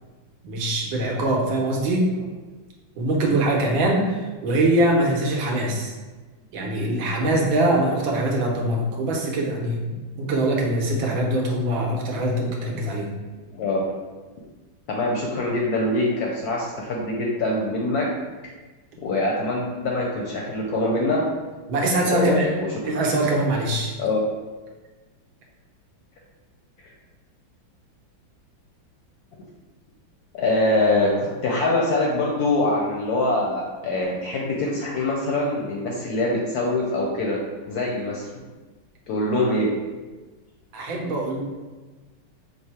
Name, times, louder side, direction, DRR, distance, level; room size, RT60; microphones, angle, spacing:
voice 1, 0.4-2.1 3.0-5.9 6.5-13.1 21.7-22.5 22.8-23.9 40.7-41.4, right 1 dB, 85° right, -1 dB, 1.6 m, -23 dB
voice 2, 13.5-13.9 14.9-18.1 19.0-21.2 22.0-22.7 24.0-24.2 30.3-37.4 37.7-38.4 39.1-39.7, left 2 dB, 70° left, -2 dB, 0.9 m, -24 dB
5.6 x 2.0 x 4.2 m, 1.3 s
omnidirectional pair, 2.1 m